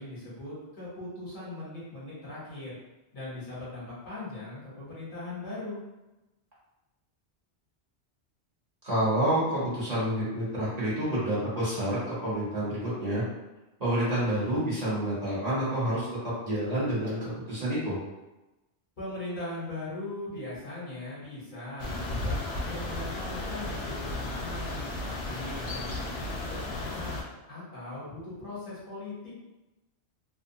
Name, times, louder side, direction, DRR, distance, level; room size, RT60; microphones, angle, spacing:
voice 1, 0.0-2.8 3.1-5.8 19.0-27.2 27.5-29.3, left 2 dB, 50° left, -8 dB, 1.0 m, -40 dB
voice 2, 8.8-13.2 13.8-18.0, right 1 dB, 40° right, -10 dB, 1.0 m, -28 dB
sound 1, 21.8-27.2, left 2 dB, 75° left, 0.8 m, -34 dB
2.7 x 2.1 x 2.6 m, 1.0 s
omnidirectional pair, 1.1 m